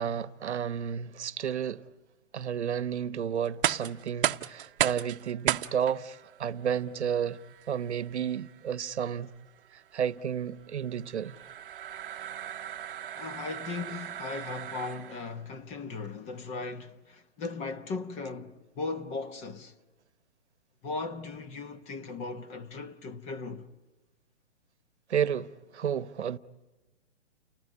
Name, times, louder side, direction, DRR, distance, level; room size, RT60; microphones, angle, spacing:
voice 1, 0.0-1.8 2.3-7.4 7.7-9.3 9.9-11.4 25.1-26.4, right 8 dB, 70° right, 1.1 m, -31 dB
sound 1, 3.4-15.3, right 11 dB, 50° right, 0.9 m, -36 dB
voice 2, 13.1-19.7 20.8-23.7, left 4 dB, 20° left, 1.0 m, -37 dB
30.0 x 19.5 x 9.6 m
hypercardioid pair, 140°, 35 cm